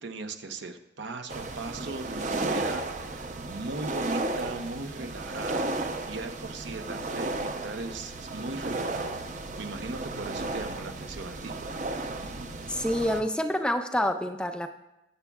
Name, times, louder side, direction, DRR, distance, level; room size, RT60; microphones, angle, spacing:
voice 1, 0.0-5.7 6.1-9.2 9.6-11.6, right 3 dB, 75° right, 7 dB, 0.8 m, -38 dB
sound 1, 1.3-13.2, right 2 dB, 45° right, 0.7 m, -34 dB
voice 2, 12.7-14.7, left 1 dB, 5° left, 7 dB, 0.4 m, -27 dB
20.5 x 7.1 x 2.3 m, 0.92 s
head